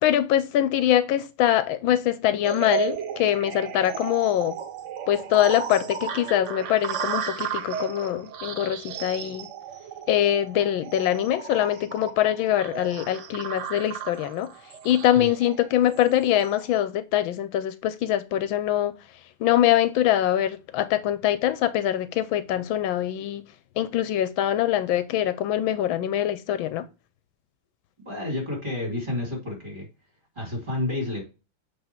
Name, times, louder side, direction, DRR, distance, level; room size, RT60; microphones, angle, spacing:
voice 1, 0.0-4.6 5.1-9.5 10.1-14.5 14.8-18.9 19.4-23.4 23.8-26.8, left 11 dB, 80° left, 1.4 m, -23 dB
sound 1, 2.4-16.7, right 8 dB, 80° right, 0.6 m, -35 dB
voice 2, 28.0-29.9 30.3-31.2, left 2 dB, 25° right, 2.8 m, -30 dB
7.9 x 3.6 x 4.4 m
omnidirectional pair, 2.2 m